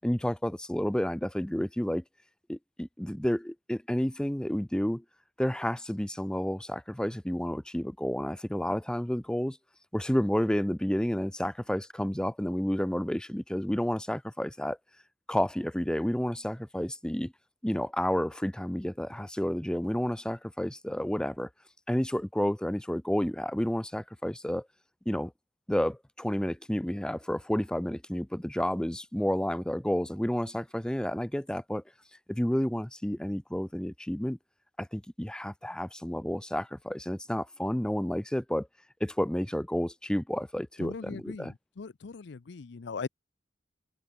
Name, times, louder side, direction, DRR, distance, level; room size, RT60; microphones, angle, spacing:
voice 1, 0.0-2.0 2.5-5.0 5.4-9.6 9.9-14.8 15.3-17.3 17.6-21.5 21.9-24.7 25.1-25.3 25.7-31.8 32.3-34.4 34.8-38.7 39.0-41.5, equal, 5° left, 0.5 m, -30 dB
voice 2, 40.8-43.1, left 4 dB, 65° left, 0.5 m, -40 dB
open air
head